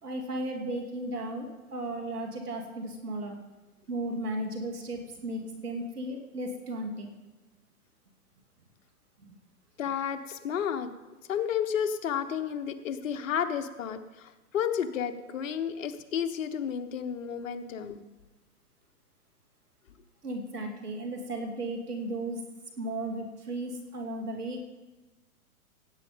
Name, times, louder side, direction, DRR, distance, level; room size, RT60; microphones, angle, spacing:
voice 1, 0.0-3.4 3.9-7.1 9.2-9.4 20.2-22.4 22.8-24.7, right 1 dB, 85° right, 3 dB, 2.7 m, -35 dB
voice 2, 9.8-10.9 11.3-18.0, left 8 dB, 60° left, 8 dB, 1.3 m, -32 dB
16.5 x 8.7 x 5.1 m, 1.1 s
hypercardioid pair, 130°, 44 cm